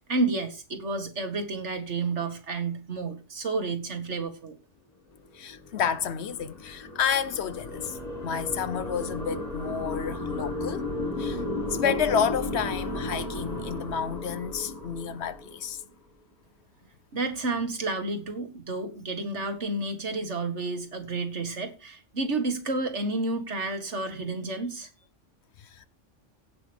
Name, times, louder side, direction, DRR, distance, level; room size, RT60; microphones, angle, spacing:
voice 1, 0.1-4.6 17.1-24.9, right 3 dB, 65° right, 2.2 m, -30 dB
voice 2, 5.3-10.8 11.2-11.4 11.7-15.8 25.6-25.9, left 7 dB, 65° left, 1.0 m, -30 dB
sound 1, 5.3-15.9, left 2 dB, 30° left, 1.9 m, -34 dB
sound 2, 7.7-13.8, right 2 dB, 45° right, 2.1 m, -47 dB
17.0 x 6.1 x 3.5 m
omnidirectional pair, 1.3 m